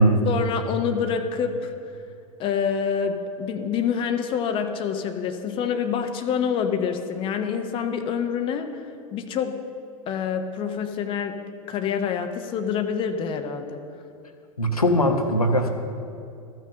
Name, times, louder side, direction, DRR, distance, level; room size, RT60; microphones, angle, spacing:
voice 1, 0.3-1.9 2.4-8.9 9.1-9.6 10.1-11.4 11.7-13.8, left 7 dB, 30° left, 6 dB, 0.8 m, -27 dB
voice 2, 14.6-15.7, equal, 85° left, 3 dB, 1.1 m, -20 dB
14.0 x 6.2 x 6.6 m, 2.5 s
figure-of-eight pair, 95°, 18 cm